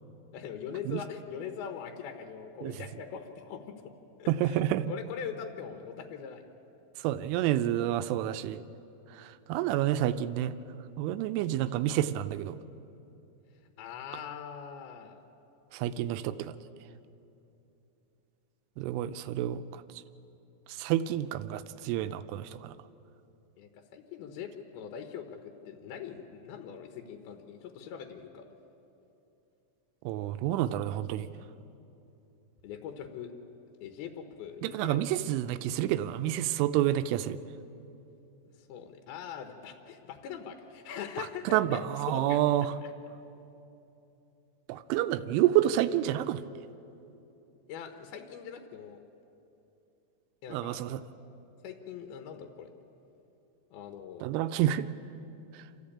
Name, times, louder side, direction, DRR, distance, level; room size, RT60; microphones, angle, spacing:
voice 1, 0.3-3.8 4.2-6.4 13.8-15.2 23.6-28.4 32.6-33.3 33.8-35.3 38.6-41.8 42.1-42.4 42.8-42.9 47.7-49.0 50.4-50.8 51.6-52.7 53.7-54.3, left 7 dB, 75° left, 6 dB, 2.4 m, -42 dB
voice 2, 4.3-4.9 7.0-8.6 9.2-10.5 11.0-12.6 15.7-16.5 18.8-19.8 20.8-22.7 30.1-31.3 34.6-37.4 41.2-42.7 44.7-46.4 50.5-51.0 54.2-54.9, right 12 dB, 85° right, 11 dB, 3.0 m, -29 dB
27.0 x 14.0 x 8.6 m, 2.9 s
omnidirectional pair, 5.6 m